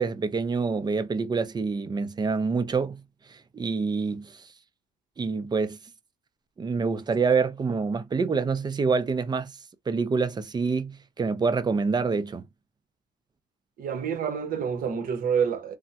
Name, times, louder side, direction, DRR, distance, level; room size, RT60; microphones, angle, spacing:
voice 1, 0.0-3.0 3.3-4.5 5.2-5.8 6.6-9.6 9.9-12.4, right 4 dB, 25° right, 0.6 m, -26 dB
voice 2, 13.8-15.8, right 7 dB, 55° right, 1.0 m, -28 dB
3.5 x 2.2 x 2.8 m
cardioid pair, 110°, 17 cm